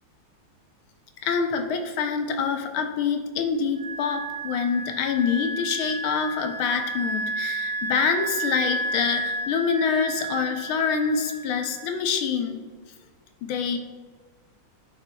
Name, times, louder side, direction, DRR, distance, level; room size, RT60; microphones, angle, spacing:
voice 1, 1.2-12.7 13.4-13.8, left 6 dB, 80° left, 6 dB, 1.5 m, -26 dB
Wind instrument woodwind instrument, 3.8-12.1, right 2 dB, 65° right, 1.2 m, -32 dB
10.5 x 5.9 x 2.3 m, 1.5 s
omnidirectional pair, 2.3 m